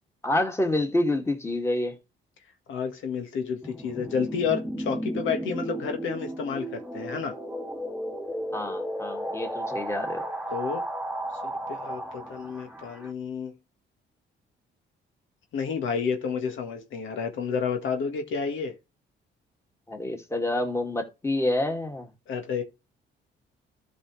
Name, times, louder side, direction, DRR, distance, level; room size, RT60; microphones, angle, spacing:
voice 1, 0.2-2.0 8.5-10.2 19.9-22.1, left 1 dB, 15° left, 2.3 m, -27 dB
voice 2, 2.7-7.4 10.5-10.8 11.7-13.5 15.5-18.7 22.3-22.6, left 6 dB, 80° left, 1.7 m, -30 dB
sound 1, 3.6-13.1, right 1 dB, 5° right, 2.1 m, -34 dB
13.0 x 5.5 x 3.3 m
cardioid pair, 90°, 20 cm